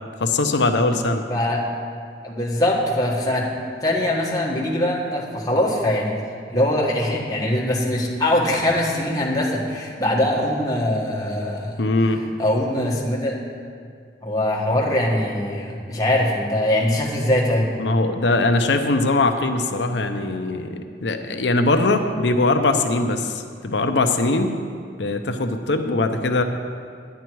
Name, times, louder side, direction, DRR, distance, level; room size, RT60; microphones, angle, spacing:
voice 1, 0.2-1.2 11.8-12.2 17.8-24.5 25.0-26.4, left 2 dB, 80° left, 6 dB, 0.7 m, -21 dB
voice 2, 1.3-1.6 2.2-3.5 3.8-6.1 6.5-13.4 14.2-17.7, left 1 dB, 20° left, -3 dB, 1.6 m, -22 dB
10.5 x 10.5 x 4.7 m, 2.1 s
head